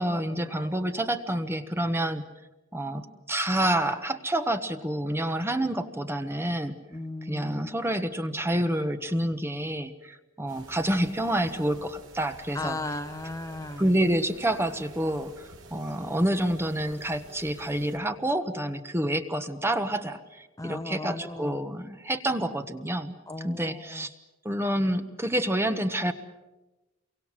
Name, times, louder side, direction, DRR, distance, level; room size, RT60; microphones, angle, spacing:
voice 1, 0.0-2.2 2.7-6.8 7.3-12.8 13.8-23.1 23.4-24.1 24.4-26.1, right 1 dB, 10° right, 8 dB, 1.2 m, -28 dB
voice 2, 6.9-7.7 12.5-13.9 20.6-21.6 23.3-24.1, left 2 dB, 15° left, 8 dB, 1.1 m, -36 dB
sound 1, 10.5-18.0, right 2 dB, 70° right, 5.0 m, -50 dB
28.0 x 24.0 x 7.5 m, 1.1 s
head